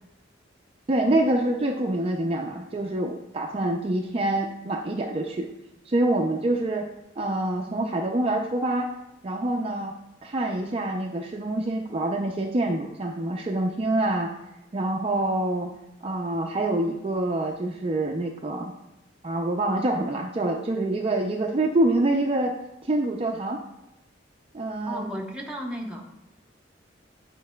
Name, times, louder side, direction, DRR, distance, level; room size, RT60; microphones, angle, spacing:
voice 1, 0.9-5.5 5.9-6.8 7.2-8.9 9.2-9.9 10.2-14.3 14.7-15.7 16.0-18.7 19.2-22.5 22.9-23.6 24.5-25.1, right 1 dB, 30° right, 1 dB, 0.4 m, -26 dB
voice 2, 24.9-26.1, equal, 5° right, 0 dB, 0.9 m, -34 dB
8.5 x 5.2 x 2.2 m, 0.92 s
head